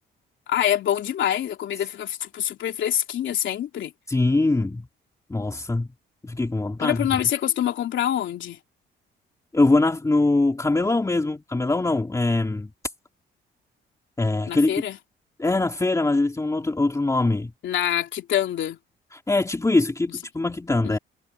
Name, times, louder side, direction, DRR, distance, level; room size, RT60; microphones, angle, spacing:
voice 1, 0.5-3.9 6.8-8.6 14.5-15.0 17.6-18.8 20.8-21.0, left 11 dB, 70° left, 3.2 m, -25 dB
voice 2, 4.1-4.9 5.3-5.9 6.2-7.1 9.5-12.7 14.2-14.7 15.4-17.5 19.1-21.0, left 2 dB, 15° left, 2.8 m, -22 dB
cardioid pair, 90°, 20 cm